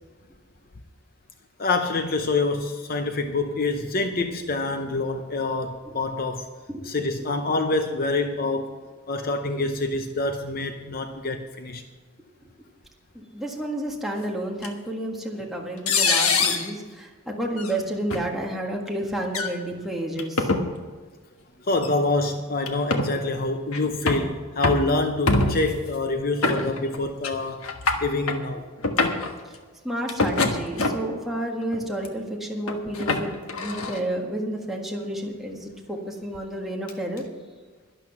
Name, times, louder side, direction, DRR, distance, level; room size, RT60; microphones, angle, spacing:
voice 1, 1.6-6.5 6.8-8.8 9.1-11.8 21.6-27.7 28.0-28.6, left 2 dB, 40° left, 6 dB, 0.7 m, -26 dB
voice 2, 13.1-20.5 29.4-29.5 29.8-37.3, right 1 dB, ahead, -1 dB, 1.7 m, -30 dB
sound 1, 14.6-14.7 15.9-16.7 17.6-17.7 18.1-18.2 19.3-19.5 20.2-20.6 21.8-21.9 22.7-23.1 23.7-24.3 24.6-24.9 25.3-25.8 26.4-27.0 27.2-27.4 27.6-28.4 28.8-29.3 30.1-31.1 31.7-32.1 32.7-34.0, left 3 dB, 75° left, 1.3 m, -24 dB
12.0 x 11.0 x 5.9 m, 1.4 s
head